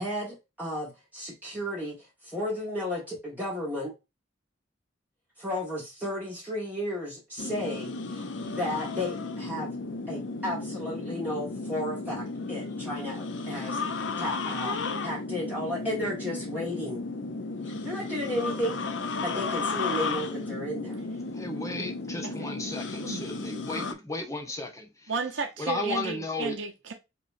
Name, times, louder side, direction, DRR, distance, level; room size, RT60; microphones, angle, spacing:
voice 1, 0.0-3.9 5.4-9.7 10.1-17.0 17.7-18.8 19.2-21.0, left 1 dB, 10° right, 1.6 m, -33 dB
sound 1, 7.4-23.9, left 3 dB, 70° left, 0.6 m, -34 dB
voice 2, 21.3-25.1 25.6-26.6, left 2 dB, 15° left, 1.0 m, -34 dB
voice 3, 25.1-26.9, right 4 dB, 80° right, 0.8 m, -33 dB
5.3 x 3.1 x 2.6 m
head